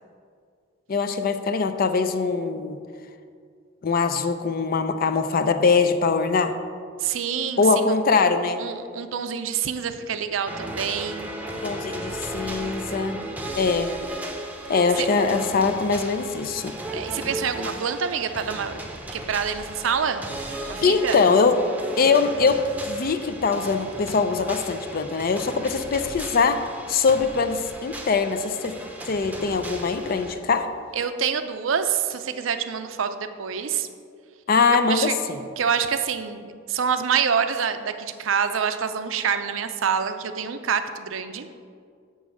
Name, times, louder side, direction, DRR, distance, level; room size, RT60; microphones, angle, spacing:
voice 1, 0.9-2.8 3.8-6.5 7.6-8.6 11.6-13.2 13.5-13.9 14.7-16.7 20.8-21.6 22.0-26.6 26.9-28.8 29.1-30.7 34.5-35.4, left 4 dB, 50° left, 9 dB, 0.5 m, -22 dB
voice 2, 7.0-8.0 8.6-11.3 15.0-15.1 16.9-18.8 19.1-20.3 20.6-21.2 30.9-33.9 34.9-35.2 35.6-41.5, right 7 dB, 80° right, 10 dB, 0.5 m, -26 dB
sound 1, 10.5-30.3, right 1 dB, 10° right, 0.7 m, -35 dB
7.1 x 5.5 x 6.3 m, 2.2 s
head